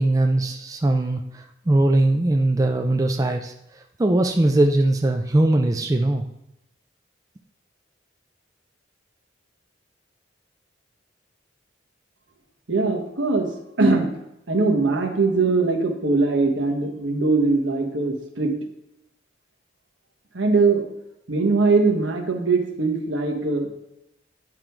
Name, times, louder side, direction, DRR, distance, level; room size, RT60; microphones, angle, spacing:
voice 1, 0.0-3.5 4.0-6.2, right 2 dB, 20° right, 4 dB, 0.4 m, -20 dB
voice 2, 12.7-13.5 13.8-14.2 14.5-18.5 20.3-20.8 21.3-23.8, right 3 dB, 75° right, 3 dB, 1.3 m, -21 dB
9.1 x 3.8 x 4.5 m, 0.83 s
head